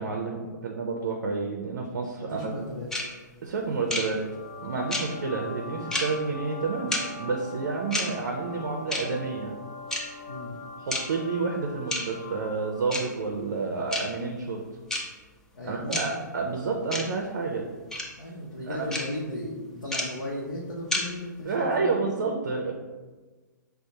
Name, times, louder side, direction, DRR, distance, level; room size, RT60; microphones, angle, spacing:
voice 1, 0.0-2.6 3.4-4.2 4.6-9.5 10.8-14.6 15.6-17.7 18.7-18.9 21.5-22.7, right 4 dB, 60° right, 1 dB, 0.5 m, -30 dB
voice 2, 2.2-2.9 10.3-10.5 15.5-16.0 18.2-22.0, left 1 dB, 85° left, -5 dB, 0.7 m, -36 dB
sound 1, 2.9-3.0 3.9-4.0 4.9-5.0 5.9-6.0 6.9-7.0 7.9-8.0 8.9-9.0 9.9-10.0 10.9-11.0 11.9-12.0 12.9-13.0 13.9-14.0 14.9-15.0 15.9-16.0 16.9-17.0 17.9-18.0 18.9-19.0 19.9-20.0 20.9-21.0, left 1 dB, 5° left, 0.4 m, -28 dB
sound 2, 4.2-13.0, left 3 dB, 55° left, 1.1 m, -41 dB
5.0 x 2.1 x 2.8 m, 1.3 s
figure-of-eight pair, 120°, 10 cm